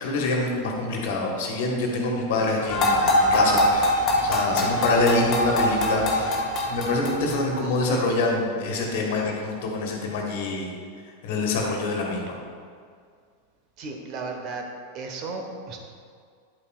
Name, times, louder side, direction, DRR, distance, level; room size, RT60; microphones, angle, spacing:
voice 1, 0.0-6.4 6.7-10.7 11.2-12.3, left 2 dB, 50° left, 0 dB, 1.5 m, -25 dB
sound 1, 2.7-7.6, left 1 dB, 30° left, 1.4 m, -23 dB
voice 2, 13.8-14.6 14.9-15.8, right 3 dB, 40° right, 2 dB, 1.1 m, -34 dB
10.5 x 8.6 x 2.4 m, 2.1 s
figure-of-eight pair, 90°, 0 cm